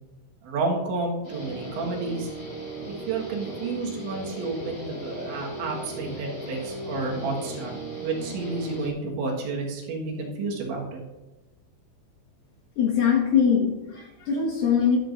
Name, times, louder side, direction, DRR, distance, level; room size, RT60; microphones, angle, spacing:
voice 1, 0.4-2.3 2.9-7.8 8.0-11.0, right 3 dB, 70° right, -1 dB, 3.7 m, -30 dB
Guitar, 1.2-8.9, right 1 dB, 25° left, 4.5 m, -37 dB
voice 2, 12.8-15.0, left 7 dB, 60° left, -2 dB, 2.7 m, -22 dB
13.5 x 12.5 x 2.6 m, 1.1 s
omnidirectional pair, 5.6 m